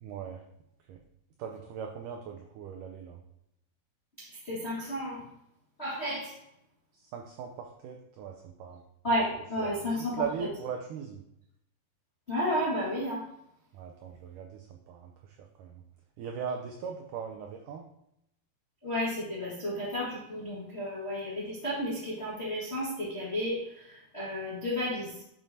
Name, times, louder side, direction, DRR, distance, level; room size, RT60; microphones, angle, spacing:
voice 1, 0.0-0.4 0.9-1.0 1.4-3.2 6.9-8.8 9.6-11.2 13.7-15.8 16.2-17.8, right 7 dB, 85° right, 3 dB, 1.8 m, -39 dB
voice 2, 4.2-5.2 5.8-6.3 9.0-10.1 12.3-13.2 18.8-23.6 24.1-25.1, equal, 40° left, -7 dB, 0.9 m, -32 dB
9.0 x 7.0 x 2.8 m, 0.80 s
omnidirectional pair, 4.5 m